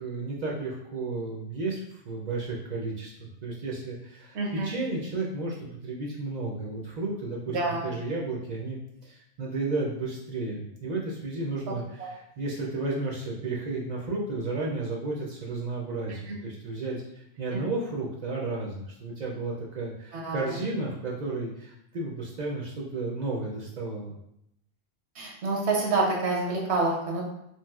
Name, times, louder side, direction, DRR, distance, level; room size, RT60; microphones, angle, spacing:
voice 1, 0.0-24.2, right 3 dB, 55° right, -3 dB, 0.5 m, -33 dB
voice 2, 4.3-4.7 7.5-7.9 12.0-12.1 16.1-16.4 17.5-17.6 20.1-20.6 25.2-27.2, right 3 dB, 85° right, -1 dB, 1.0 m, -28 dB
3.0 x 2.6 x 2.3 m, 0.77 s
omnidirectional pair, 1.1 m